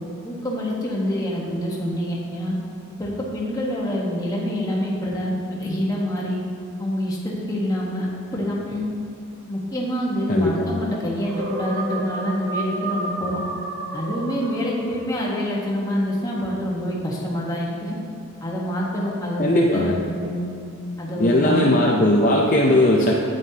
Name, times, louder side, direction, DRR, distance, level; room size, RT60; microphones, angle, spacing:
voice 1, 0.2-2.5 3.0-6.4 6.8-8.9 9.5-13.4 13.9-18.0 18.4-20.5 21.0-21.7, equal, 15° left, -4 dB, 1.2 m, -26 dB
voice 2, 10.3-10.8 19.4-19.9 21.2-23.1, left 1 dB, 35° left, -2 dB, 0.5 m, -18 dB
sound 1, 11.1-15.2, right 2 dB, 85° right, 1.8 m, -31 dB
9.3 x 9.0 x 2.8 m, 2.5 s
head